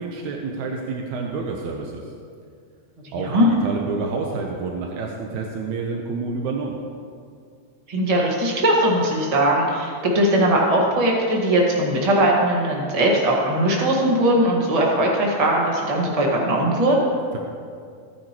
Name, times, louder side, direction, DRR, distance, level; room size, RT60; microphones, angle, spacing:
voice 1, 0.0-2.1 3.1-6.8, right 4 dB, 90° right, 1 dB, 2.2 m, -28 dB
voice 2, 3.1-3.5 7.9-17.1, right 1 dB, 25° right, -2 dB, 0.8 m, -20 dB
16.0 x 9.5 x 3.0 m, 2.2 s
omnidirectional pair, 3.4 m